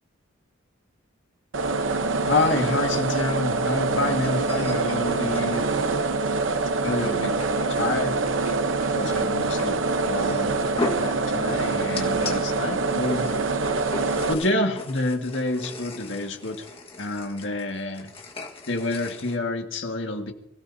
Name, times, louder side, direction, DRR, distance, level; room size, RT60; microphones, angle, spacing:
sound 1, 1.5-14.3, right 3 dB, 80° right, 0.9 m, -25 dB
voice 1, 2.3-5.7 6.8-7.3 7.7-8.2 8.9-9.8 10.1-10.6 10.9-13.3 14.3-16.6 17.0-18.1 18.7-20.3, left 2 dB, 65° left, 4 dB, 1.8 m, -28 dB
sound 2, 3.5-3.7 3.9-5.6 6.7-6.8 7.4-7.8 8.1-8.6 8.8-8.9 9.3-9.6 10.3-12.4 12.7-19.4, left 2 dB, 30° left, 1.5 m, -37 dB
24.5 x 16.0 x 2.8 m, 0.78 s
head